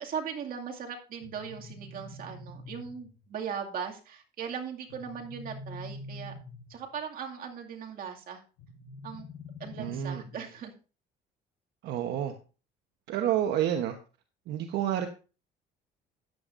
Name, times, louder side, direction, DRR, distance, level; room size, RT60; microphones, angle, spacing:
voice 1, 0.0-6.3 6.7-8.4 9.0-9.2 9.6-10.7, right 7 dB, 60° right, 2 dB, 2.3 m, -38 dB
sound 1, 1.2-3.2 4.9-6.9 8.6-10.6, left 2 dB, 75° left, 1.6 m, -45 dB
voice 2, 9.8-10.2 11.8-12.3 13.1-13.9 14.5-15.1, right 11 dB, 80° right, 6 dB, 1.1 m, -29 dB
14.0 x 9.8 x 2.6 m, 0.35 s
cardioid pair, 110°, 17 cm